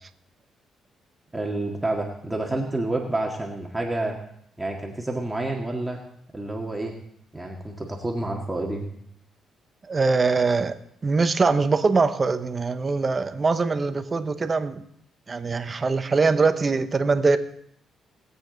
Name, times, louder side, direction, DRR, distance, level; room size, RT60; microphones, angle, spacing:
voice 1, 1.3-4.2 4.6-6.0 6.3-6.9 7.3-8.9, right 2 dB, 10° right, 1.9 m, -29 dB
voice 2, 9.9-10.7 11.0-14.8 15.3-17.4, right 4 dB, 30° right, 1.0 m, -22 dB
20.0 x 8.4 x 4.0 m
cardioid pair, 90°, 0 cm